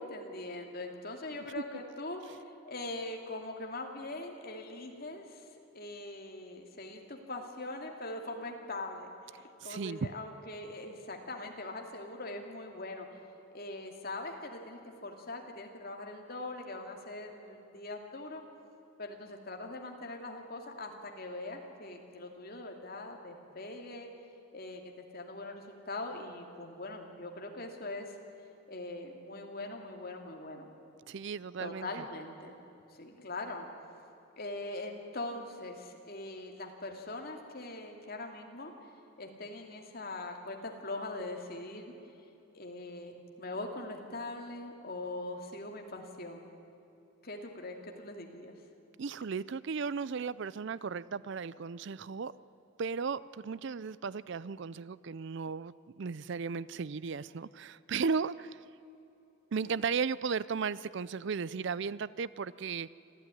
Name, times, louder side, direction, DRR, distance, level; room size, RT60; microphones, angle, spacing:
voice 1, 0.0-5.5 5.7-9.1 9.4-13.1 13.5-18.4 19.0-24.1 24.5-28.1 28.7-30.7 31.6-32.6 32.9-33.7 34.4-38.7 39.2-41.9 42.5-46.5 47.2-48.5, left 2 dB, 45° left, 2 dB, 2.6 m, -42 dB
voice 2, 9.6-10.1 31.1-31.9 49.0-52.3 52.8-58.6 59.5-62.9, right 5 dB, 55° right, 18 dB, 0.4 m, -35 dB
25.5 x 15.0 x 9.9 m, 2.9 s
head